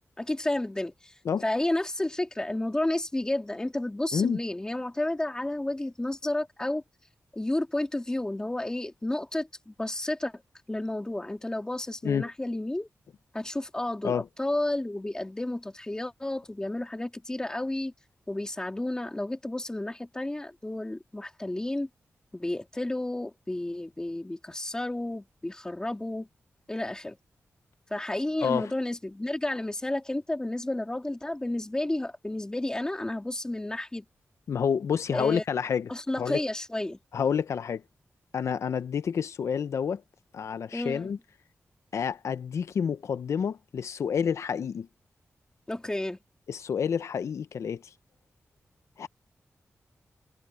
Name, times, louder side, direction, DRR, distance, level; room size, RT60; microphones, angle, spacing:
voice 1, 0.2-1.1 1.4-6.8 7.3-10.3 10.7-12.9 13.3-17.9 18.3-21.9 22.3-26.3 26.7-27.2 27.9-34.0 35.1-35.4 35.9-37.0 40.7-41.1 45.7-46.2, left 1 dB, 15° left, 3.1 m, -31 dB
voice 2, 28.4-28.7 34.5-36.4 37.1-37.8 38.3-40.0 40.3-41.2 41.9-44.9 46.5-47.9 49.0-49.1, left 7 dB, 80° left, 0.6 m, -29 dB
wide cardioid pair, 135°, 5 cm